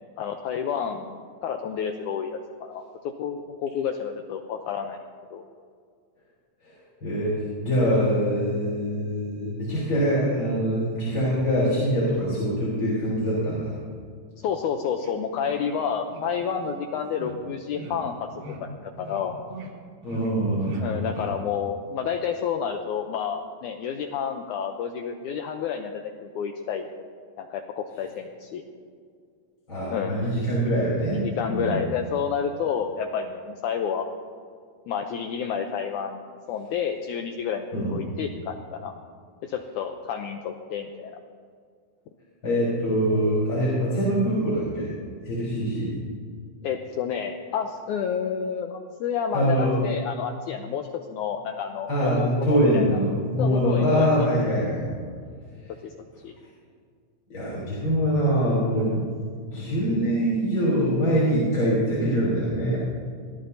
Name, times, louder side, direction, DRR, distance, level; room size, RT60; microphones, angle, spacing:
voice 1, 0.2-5.0 5.3-5.4 14.4-18.3 18.6-19.4 20.8-25.9 26.2-26.9 27.4-28.6 29.9-30.3 31.1-34.1 34.9-36.2 36.5-38.9 39.4-41.2 46.6-53.0 53.4-54.1 55.8-55.9 56.2-56.4, left 7 dB, 85° left, 5 dB, 1.8 m, -30 dB
voice 2, 7.0-13.7 20.0-21.2 29.7-31.8 37.7-38.0 42.4-44.9 45.2-45.9 49.3-49.8 51.9-54.9 55.6-55.7 57.3-59.0 59.5-62.8, equal, 30° left, -7 dB, 4.2 m, -24 dB
sound 1, 15.0-15.1 15.4-15.7 16.1-16.2 16.6-16.7 17.2-17.4 17.7-18.0 18.4-18.6 18.9-19.2 19.5-19.7 20.0-20.3 20.6-20.8 21.1-21.3, equal, 80° right, 4.1 m, -40 dB
23.5 x 18.0 x 2.7 m, 2.1 s
omnidirectional pair, 4.3 m